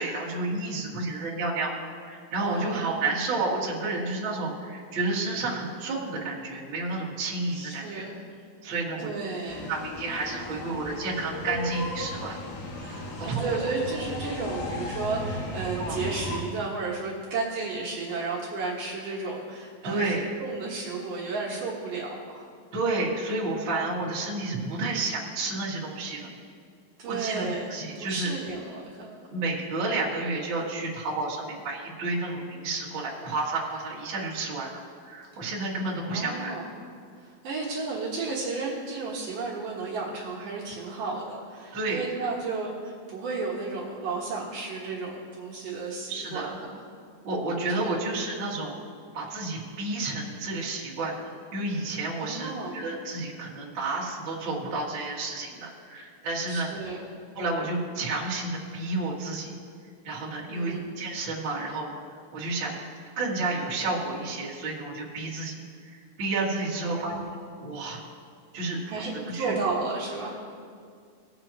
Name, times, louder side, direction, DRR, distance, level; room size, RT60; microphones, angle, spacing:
voice 1, 0.0-1.7 2.0-8.1 8.6-9.1 9.6-12.4 13.2-13.6 15.8-16.0 19.8-20.3 22.7-26.3 27.0-28.3 29.3-36.5 41.7-42.3 46.1-46.5 47.2-48.7 49.1-56.7 57.3-59.5 60.0-61.9 62.3-62.8 63.2-67.1 67.6-68.0 68.5-69.5, right 2 dB, 40° right, -7 dB, 2.3 m, -31 dB
voice 2, 2.4-3.1 7.5-8.2 8.6-9.7 12.8-22.5 27.0-27.6 28.0-29.2 36.1-36.7 37.2-46.8 47.8-48.0 52.2-52.8 56.5-57.1 60.5-60.8 66.9-67.2 68.8-70.4, right 4 dB, 65° right, -5 dB, 2.8 m, -33 dB
sound 1, 9.5-16.4, left 2 dB, 75° left, 3.0 m, -36 dB
19.0 x 7.7 x 3.0 m, 2.2 s
omnidirectional pair, 4.3 m